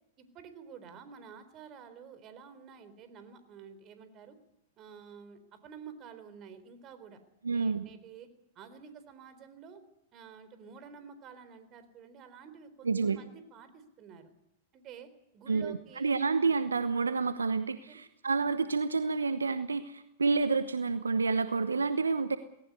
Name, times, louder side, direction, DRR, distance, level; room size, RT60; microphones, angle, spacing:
voice 1, 0.2-4.4 4.8-7.2 7.5-8.3 8.6-9.8 10.1-14.3 14.7-16.1 17.8-18.0, right 6 dB, 35° right, 11 dB, 3.9 m, -50 dB
voice 2, 7.4-7.8 12.8-13.2 15.5-22.4, right 4 dB, 85° right, 12 dB, 1.0 m, -29 dB
18.5 x 17.5 x 9.8 m, 0.84 s
figure-of-eight pair, 100°, 0 cm